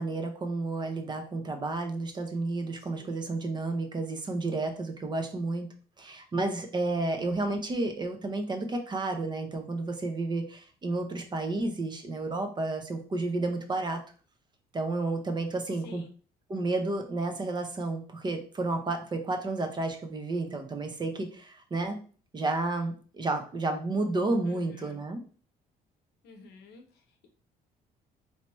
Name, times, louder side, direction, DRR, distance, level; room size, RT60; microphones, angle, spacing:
voice 1, 0.0-5.7 6.0-14.0 14.7-16.0 16.5-22.0 22.3-25.2, right 2 dB, 25° right, 6 dB, 0.7 m, -31 dB
voice 2, 2.8-3.2 15.7-16.1 24.5-25.0 26.2-27.3, left 3 dB, 80° left, 5 dB, 0.9 m, -51 dB
3.3 x 2.8 x 3.0 m, 0.40 s
cardioid pair, 110°, 17 cm